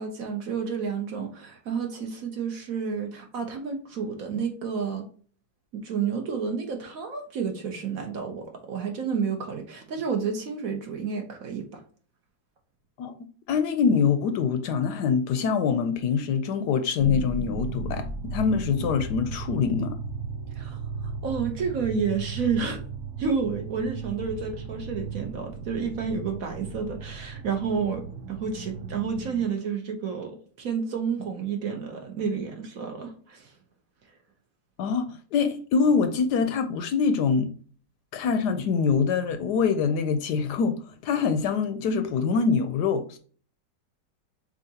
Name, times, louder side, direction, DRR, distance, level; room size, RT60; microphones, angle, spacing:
voice 1, 0.0-5.1 5.7-11.8 20.5-20.8 21.2-22.8 23.2-33.5, right 6 dB, 55° right, 1.2 m, -30 dB
voice 2, 13.5-18.0 18.3-20.0 34.8-35.1 35.3-37.5 38.1-40.8 41.0-43.2, left 5 dB, 75° left, 1.1 m, -24 dB
sound 1, 17.0-29.5, right 4 dB, 75° right, 0.7 m, -36 dB
7.0 x 2.6 x 2.8 m
omnidirectional pair, 1.9 m